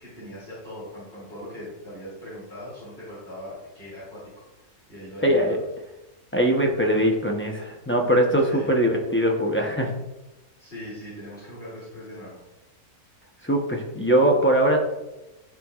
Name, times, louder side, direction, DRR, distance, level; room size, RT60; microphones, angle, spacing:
voice 1, 0.0-5.6 8.4-8.7 10.6-12.4, equal, 40° left, -10 dB, 2.7 m, -40 dB
voice 2, 5.2-5.6 6.3-9.9 13.4-14.8, right 1 dB, 15° left, -1 dB, 0.5 m, -21 dB
12.5 x 4.6 x 2.4 m, 1.0 s
omnidirectional pair, 1.6 m